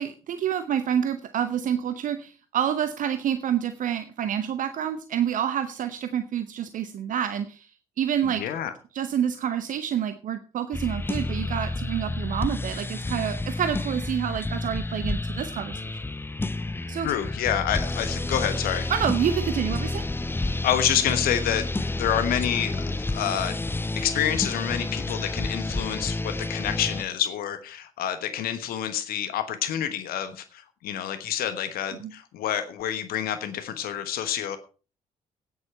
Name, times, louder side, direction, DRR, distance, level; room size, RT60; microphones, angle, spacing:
voice 1, 0.0-7.7 8.0-8.4 8.9-15.9 16.9-17.1 18.9-20.0 32.0-32.1, right 9 dB, 50° right, 11 dB, 0.9 m, -28 dB
voice 2, 8.2-8.7 17.0-18.9 20.6-22.8 23.1-23.6 23.9-34.6, left 10 dB, 60° left, 11 dB, 1.2 m, -28 dB
sound 1, 10.7-27.0, left 2 dB, 10° left, 0.8 m, -30 dB
14.5 x 9.8 x 4.4 m, 0.36 s
figure-of-eight pair, 45°, 18 cm